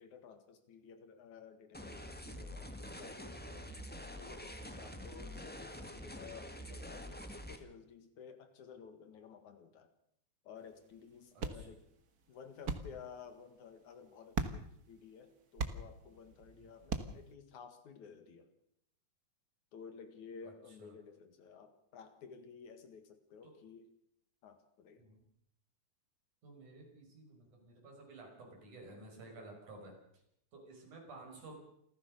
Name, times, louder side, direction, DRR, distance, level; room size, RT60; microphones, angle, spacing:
voice 1, 0.0-3.7 4.1-9.9 10.4-11.9 12.3-18.5 19.7-23.9 24.4-25.0, left 6 dB, 70° left, 9 dB, 3.2 m, -54 dB
sound 1, 1.7-7.6, equal, 5° left, 0.8 m, -46 dB
sound 2, 10.6-17.3, right 4 dB, 45° right, 1.2 m, -43 dB
voice 2, 11.4-11.7 16.6-16.7 20.4-20.5 20.8-20.9 23.4-23.6 25.0-25.2 26.4-29.9 30.5-31.6, right 2 dB, 70° right, 1 dB, 7.2 m, -53 dB
27.5 x 14.5 x 6.7 m, 0.72 s
omnidirectional pair, 3.6 m